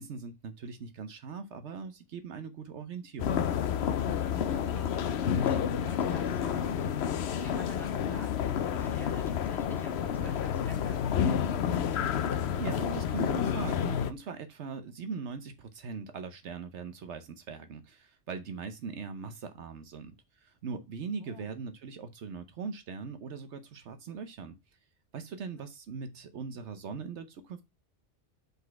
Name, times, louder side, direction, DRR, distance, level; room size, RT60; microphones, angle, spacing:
voice 1, 0.0-3.4 12.3-24.6 25.1-27.7, right 5 dB, 70° right, 1.0 m, -40 dB
sound 1, 3.2-14.1, left 8 dB, 65° left, 0.9 m, -30 dB
voice 2, 4.2-11.5 21.2-21.5 25.4-25.7, equal, ahead, 1.7 m, -50 dB
5.5 x 4.1 x 4.5 m
omnidirectional pair, 1.2 m